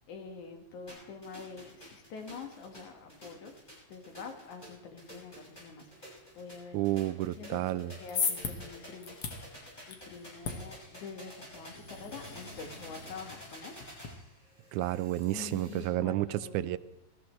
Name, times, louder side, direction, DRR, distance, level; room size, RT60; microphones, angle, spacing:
voice 1, 0.1-3.5 3.9-6.8 7.3-9.2 9.9-13.7 15.3-16.7, left 5 dB, 85° left, 4 dB, 3.1 m, -46 dB
sound 1, 0.9-15.9, equal, 15° left, 6.7 m, -51 dB
voice 2, 6.7-7.9 14.7-16.8, right 14 dB, 90° right, 15 dB, 2.1 m, -31 dB
sound 2, 7.7-14.1, left 5 dB, 65° left, 2.7 m, -39 dB
21.5 x 15.0 x 3.2 m, 1.0 s
omnidirectional pair, 3.4 m